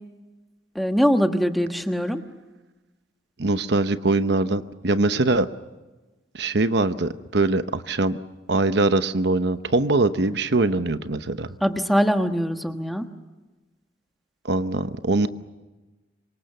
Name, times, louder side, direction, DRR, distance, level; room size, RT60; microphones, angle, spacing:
voice 1, 0.7-2.2 11.6-13.0, equal, ahead, 6 dB, 1.3 m, -22 dB
voice 2, 3.4-5.5 6.3-8.2 8.5-11.5 14.4-15.3, right 2 dB, 65° right, 11 dB, 0.9 m, -22 dB
27.0 x 24.5 x 6.7 m, 1.2 s
head